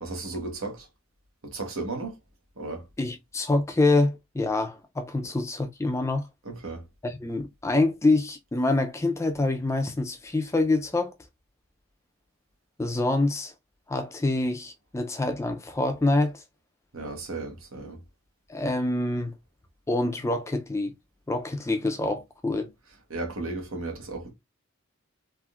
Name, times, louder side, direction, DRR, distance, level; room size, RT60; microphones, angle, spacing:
voice 1, 0.0-0.9 1.4-2.2 2.6-2.8 6.4-6.8 16.9-18.0 23.1-24.3, right 3 dB, 85° right, 1.1 m, -34 dB
voice 2, 3.0-6.2 7.0-11.1 12.8-13.5 13.9-16.4 18.5-19.3 19.9-20.9 21.3-22.7, left 2 dB, 15° left, 0.3 m, -26 dB
3.5 x 2.5 x 2.3 m
head